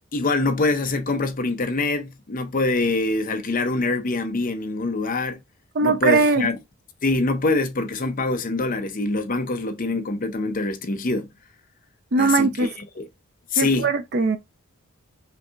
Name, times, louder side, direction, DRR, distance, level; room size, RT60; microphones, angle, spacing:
voice 1, 0.1-5.4 5.8-6.6 7.0-11.3 12.2-12.5 13.0-13.1 13.5-13.9, left 3 dB, 40° left, 0.6 m, -24 dB
voice 2, 5.7-6.5 12.1-12.7 13.6-14.4, right 3 dB, 45° right, 0.5 m, -20 dB
5.2 x 2.7 x 2.4 m
head